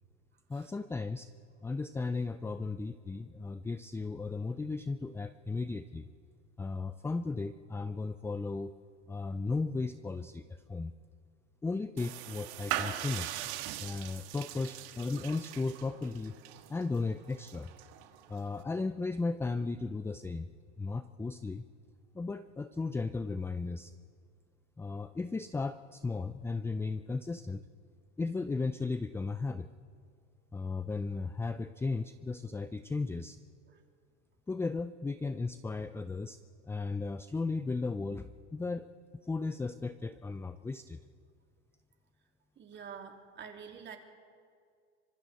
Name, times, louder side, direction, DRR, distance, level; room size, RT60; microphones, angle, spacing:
voice 1, 0.5-1.3 1.6-6.1 6.6-8.7 9.1-10.9 11.6-13.5 13.8-16.4 16.7-17.7 18.3-20.5 20.8-21.6 22.1-23.9 24.8-27.6 28.2-29.7 30.5-33.4 34.5-36.4 36.6-38.9 39.2-41.0, left 3 dB, 5° left, 12 dB, 0.5 m, -35 dB
sound 1, 12.0-18.6, right 13 dB, 65° right, 1.8 m, -41 dB
voice 2, 42.6-44.0, right 7 dB, 30° right, 3 dB, 2.9 m, -47 dB
25.5 x 25.0 x 4.2 m, 2.2 s
hypercardioid pair, 110°, 36 cm